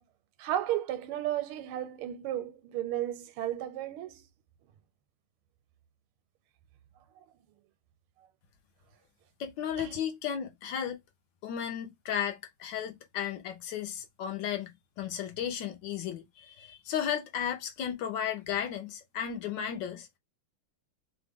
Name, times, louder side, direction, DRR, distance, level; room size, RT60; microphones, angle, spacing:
voice 1, 0.4-4.3 7.2-7.3 9.8-9.9, right 12 dB, 80° right, 1.4 m, -34 dB
voice 2, 9.4-11.0 11.4-20.1, left 9 dB, 75° left, 1.1 m, -34 dB
3.4 x 2.1 x 3.4 m
omnidirectional pair, 2.3 m